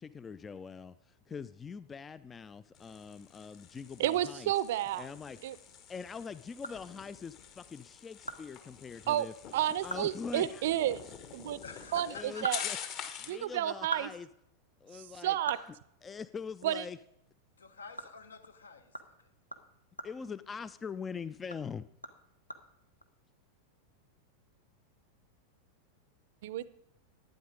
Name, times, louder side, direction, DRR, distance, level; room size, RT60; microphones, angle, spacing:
voice 1, 0.0-4.5 5.0-5.6 5.9-9.3 9.7-10.6 12.1-12.8 13.3-14.3 14.8-15.4 16.0-17.0 20.0-21.9, left 6 dB, 20° left, 16 dB, 0.3 m, -43 dB
sound 1, 2.7-13.5, left 8 dB, 35° left, 1.2 m, -46 dB
voice 2, 4.0-5.1 5.4-5.6 9.1-9.3 9.5-11.0 11.3-11.6 11.9-12.1 12.4-12.6 13.3-14.1 14.9-15.6 16.6-16.8 26.4-26.7, right 12 dB, 55° right, 19 dB, 0.5 m, -31 dB
sound 2, 6.6-7.4 7.8-7.9 8.3-8.4 8.7-8.8 9.3-9.4 9.8-10.2 10.4-10.5 12.0-13.3 13.7-16.6 16.9-17.1 17.5-21.0 21.4-23.0, right 1 dB, 90° left, 0.9 m, -44 dB
voice 3, 11.6-12.9 17.6-19.3, left 4 dB, 70° left, 9 dB, 1.1 m, -48 dB
11.5 x 9.2 x 5.1 m, 0.76 s
figure-of-eight pair, 90°, 0 cm